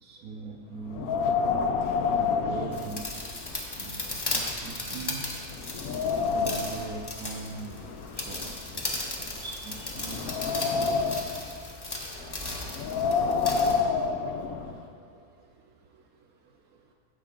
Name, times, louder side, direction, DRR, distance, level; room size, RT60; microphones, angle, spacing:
voice 1, 0.0-1.3 2.2-3.2 3.8-5.2 6.1-9.1 9.4-10.2, right 4 dB, 70° right, 1 dB, 1.1 m, -41 dB
Wind, 0.9-3.5 3.9-4.0 4.6-4.7 5.2-6.8 7.7-9.2 9.8-11.4 12.7-14.8, left 5 dB, 70° left, 1.0 m, -28 dB
sound 1, 2.7-13.8, left 2 dB, 25° left, 0.5 m, -36 dB
Tearing, 3.4-5.0 5.5-7.0 8.0-8.5 9.1-10.7 12.0-12.8, left 1 dB, 50° left, 1.5 m, -48 dB
9.9 x 6.9 x 3.7 m, 2.3 s
omnidirectional pair, 1.6 m